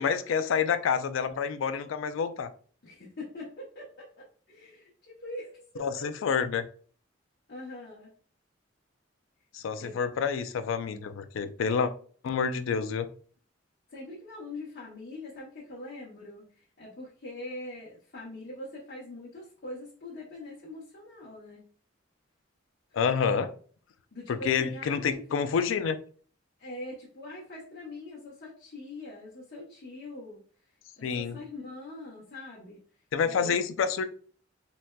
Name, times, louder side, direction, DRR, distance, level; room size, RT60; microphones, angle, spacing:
voice 1, 0.0-2.5 5.8-6.7 9.5-11.9 12.2-13.1 22.9-23.5 24.3-26.0 31.0-31.4 33.1-34.0, left 6 dB, 85° left, 10 dB, 0.3 m, -28 dB
voice 2, 2.8-6.3 7.5-8.1 9.8-10.0 13.9-21.6 24.1-25.2 26.6-30.4 31.0-32.8 33.2-33.6, left 2 dB, 55° left, -5 dB, 0.8 m, -43 dB
3.9 x 2.2 x 2.2 m, 0.44 s
head